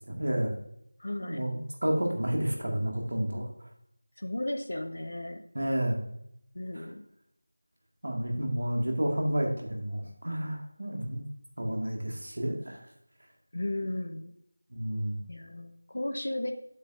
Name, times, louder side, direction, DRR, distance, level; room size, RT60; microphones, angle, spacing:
voice 1, 0.1-0.5 1.2-3.7 5.5-6.1 6.8-6.9 8.0-11.2 11.6-12.9 14.7-15.2, equal, 65° right, 1 dB, 1.8 m, -30 dB
voice 2, 1.0-1.4 4.2-5.4 6.5-7.0 13.5-14.3 15.3-16.5, left 1 dB, 55° left, 4 dB, 0.9 m, -35 dB
8.5 x 7.1 x 2.5 m, 0.74 s
figure-of-eight pair, 175°, 0 cm